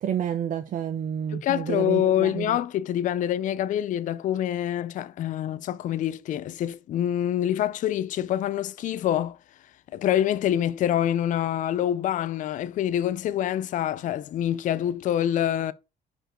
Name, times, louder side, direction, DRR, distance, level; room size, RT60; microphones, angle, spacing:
voice 1, 0.0-2.6, right 9 dB, 50° right, 0.6 m, -29 dB
voice 2, 1.3-9.4 9.9-15.7, left 11 dB, 50° left, 0.4 m, -26 dB
5.1 x 4.5 x 4.3 m
cardioid pair, 110°, 17 cm